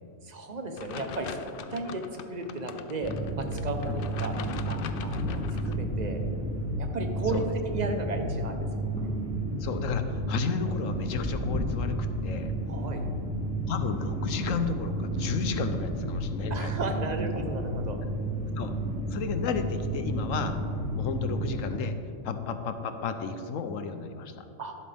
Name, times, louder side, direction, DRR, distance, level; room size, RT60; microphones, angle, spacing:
voice 1, 0.2-1.4 1.7-2.0 2.3-4.3 4.7-6.2 6.8-8.7 9.0-9.2 12.7-13.1 16.5-18.0 24.6-24.7, right 2 dB, 35° right, 4 dB, 1.0 m, -34 dB
sound 1, 0.8-5.8, left 7 dB, 60° left, 0.6 m, -42 dB
sound 2, 3.0-21.7, right 1 dB, 5° left, 2.0 m, -32 dB
voice 2, 9.6-12.0 12.2-12.5 13.7-16.7 18.6-18.8 19.1-20.6 20.9-22.0 22.2-24.4, left 5 dB, 85° left, 8 dB, 1.2 m, -32 dB
12.0 x 11.0 x 3.5 m, 2.5 s
omnidirectional pair, 1.3 m